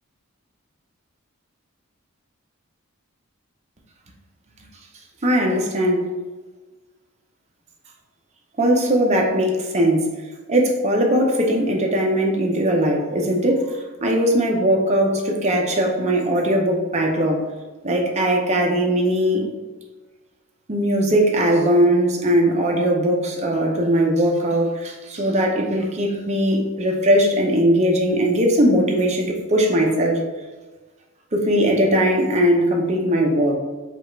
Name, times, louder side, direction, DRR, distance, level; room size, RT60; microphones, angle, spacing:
voice 1, 5.2-6.1 8.6-10.2 10.5-17.5 17.8-19.5 20.7-30.2 31.3-33.6, equal, 30° right, 1 dB, 0.7 m, -19 dB
4.8 x 2.4 x 4.4 m, 1.3 s
head